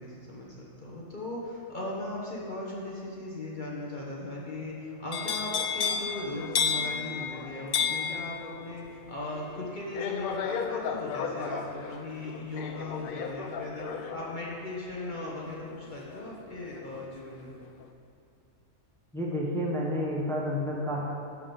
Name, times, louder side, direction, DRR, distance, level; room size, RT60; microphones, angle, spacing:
voice 1, 0.0-17.5, left 2 dB, 40° left, -4 dB, 1.0 m, -38 dB
sound 1, 5.1-17.1 17.4-17.8, left 6 dB, 70° left, 0.5 m, -33 dB
voice 2, 19.1-21.0, equal, ahead, -3 dB, 0.8 m, -30 dB
9.1 x 3.8 x 7.0 m, 2.6 s
omnidirectional pair, 1.4 m